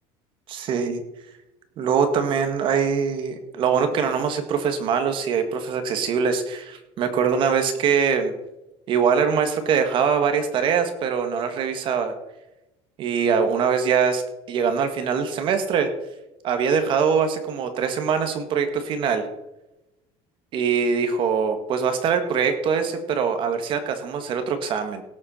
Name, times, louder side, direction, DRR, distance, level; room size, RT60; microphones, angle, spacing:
voice 1, 0.5-1.0 1.8-8.3 8.9-12.1 13.0-14.2 14.5-15.9 16.4-19.2 20.5-25.0, right 6 dB, 45° right, 8 dB, 1.8 m, -23 dB
17.5 x 7.7 x 4.4 m, 0.93 s
cardioid pair, 155°, 12 cm